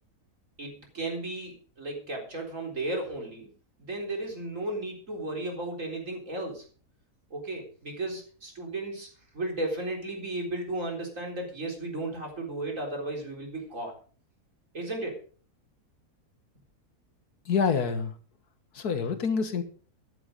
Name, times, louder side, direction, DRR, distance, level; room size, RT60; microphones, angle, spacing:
voice 1, 0.6-3.5 3.8-6.7 7.3-13.9 14.7-15.2, right 2 dB, 55° right, 1 dB, 4.4 m, -34 dB
voice 2, 17.5-18.1 18.7-19.6, left 6 dB, 85° left, 9 dB, 2.1 m, -26 dB
13.5 x 11.0 x 5.1 m, 0.42 s
omnidirectional pair, 1.6 m